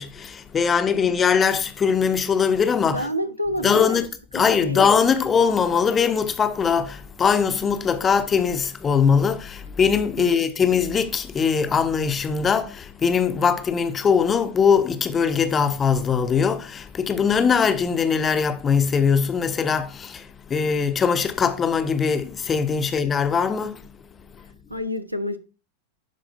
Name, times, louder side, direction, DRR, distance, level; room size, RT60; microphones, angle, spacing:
voice 1, 0.0-3.1 3.6-4.1 4.3-24.5, left 6 dB, 20° left, 0.8 m, -21 dB
voice 2, 2.9-4.1 4.3-4.9 10.2-10.7 24.7-25.4, equal, 90° right, 0.7 m, -29 dB
11.5 x 4.5 x 2.7 m
figure-of-eight pair, 90°, 0 cm